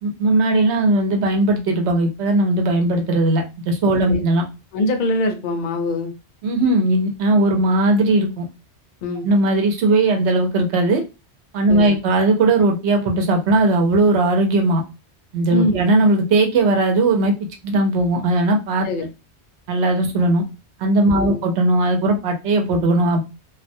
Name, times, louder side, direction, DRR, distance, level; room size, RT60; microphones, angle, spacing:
voice 1, 0.0-4.4 6.4-8.5 9.2-11.0 11.5-14.8 15.3-17.3 17.6-18.9 19.7-20.4 20.8-23.2, right 2 dB, 75° right, 3 dB, 0.9 m, -18 dB
voice 2, 4.7-6.1 9.0-9.3 11.7-12.0 15.5-15.8 18.8-19.1 21.1-21.4, left 1 dB, 55° left, 5 dB, 0.6 m, -23 dB
2.3 x 2.1 x 2.5 m, 0.27 s
omnidirectional pair, 1.1 m